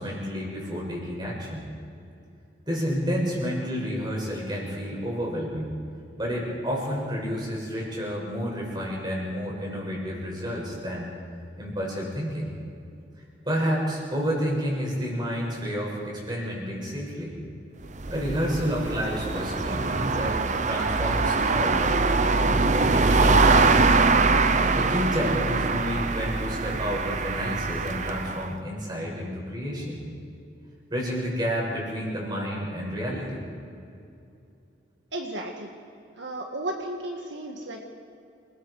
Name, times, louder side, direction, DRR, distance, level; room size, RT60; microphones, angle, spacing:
voice 1, 0.0-1.7 2.7-5.8 6.2-11.1 11.6-12.5 13.5-17.3 18.1-21.9 22.2-23.8 24.7-30.0 30.9-33.5, equal, 25° right, -3 dB, 6.4 m, -30 dB
sound 1, 17.8-28.5, right 3 dB, 40° right, 0.8 m, -23 dB
voice 2, 35.1-35.8 36.2-37.8, right 1 dB, 70° right, 2 dB, 1.7 m, -34 dB
28.5 x 21.0 x 4.8 m, 2.6 s
head